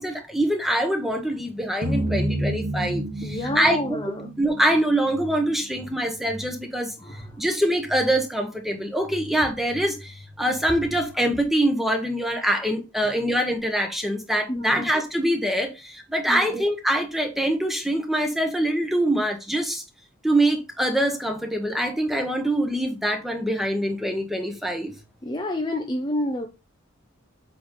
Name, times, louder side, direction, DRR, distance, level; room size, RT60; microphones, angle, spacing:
voice 1, 0.0-3.8 4.4-19.8 20.2-24.9, right 1 dB, ahead, 1.2 m, -24 dB
sound 1, 1.8-6.2, right 1 dB, 45° right, 1.7 m, -30 dB
voice 2, 3.2-4.3 7.0-7.4 13.0-13.2 14.5-14.9 16.3-16.6 25.2-26.5, left 1 dB, 20° left, 0.7 m, -29 dB
7.8 x 4.0 x 3.9 m
head